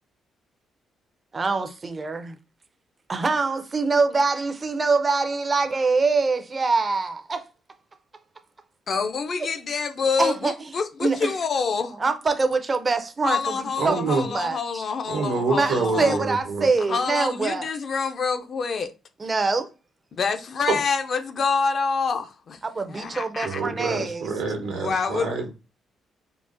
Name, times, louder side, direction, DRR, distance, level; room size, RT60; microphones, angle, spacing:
voice 1, 1.3-2.4 3.1-7.4 10.2-10.5 11.0-11.3 12.0-14.9 15.6-17.7 19.2-19.7 22.6-24.3, right 4 dB, 30° right, 0.4 m, -24 dB
voice 2, 8.9-11.9 13.2-16.2 16.9-18.9 20.2-22.6 22.9-23.6 24.6-25.3, left 5 dB, 50° left, 0.4 m, -27 dB
voice 3, 13.8-14.2 15.1-16.7 20.7-20.8 23.4-25.5, right 4 dB, 85° right, 0.8 m, -26 dB
3.7 x 2.1 x 2.5 m
cardioid pair, 90°, 0 cm